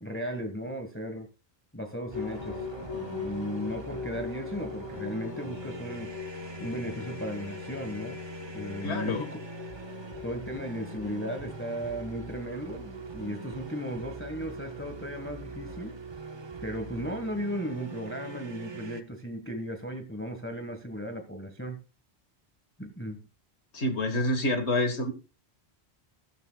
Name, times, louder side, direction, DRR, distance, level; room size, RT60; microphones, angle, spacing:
voice 1, 0.0-1.3 1.7-6.1 6.6-8.2 8.5-9.4 10.2-16.0 16.6-21.8 22.8-23.3, equal, 10° left, 6 dB, 1.4 m, -36 dB
sound 1, 2.1-15.9, left 6 dB, 65° left, 1.6 m, -43 dB
sound 2, 2.1-19.0, right 3 dB, 30° right, 0.7 m, -42 dB
voice 2, 8.8-9.3 23.7-25.1, left 1 dB, 90° left, 8 dB, 1.9 m, -27 dB
13.5 x 12.5 x 2.3 m, 0.32 s
omnidirectional pair, 1.1 m